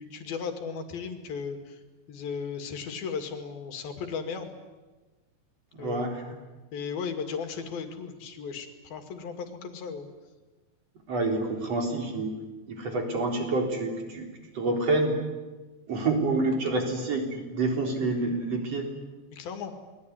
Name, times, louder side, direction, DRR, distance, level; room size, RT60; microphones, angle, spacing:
voice 1, 0.0-1.8 2.1-4.5 5.8-6.1 6.7-10.1 14.7-14.8 16.7-16.9 19.3-19.7, left 6 dB, 70° left, 6 dB, 4.1 m, -36 dB
voice 2, 5.8-6.2 11.1-12.4 12.7-14.3 14.5-15.2 15.9-18.9, right 2 dB, 40° right, 3 dB, 4.8 m, -27 dB
28.5 x 21.5 x 9.7 m, 1.2 s
omnidirectional pair, 4.5 m